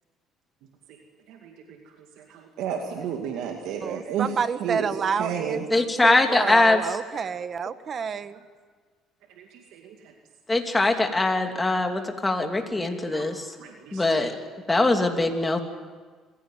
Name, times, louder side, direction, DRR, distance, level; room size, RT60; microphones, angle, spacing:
voice 1, 2.3-4.3 4.6-4.9 5.2-5.6 9.4-9.5 9.7-9.8 13.1-14.2, right 8 dB, 80° right, 2 dB, 2.2 m, -32 dB
voice 2, 3.8-8.4, right 6 dB, 45° right, 12 dB, 1.3 m, -29 dB
voice 3, 5.7-6.8 10.5-13.5 13.9-14.3 14.7-15.6, left 2 dB, 15° left, 4 dB, 3.0 m, -22 dB
26.5 x 16.5 x 9.3 m, 1.5 s
cardioid pair, 90°, 0 cm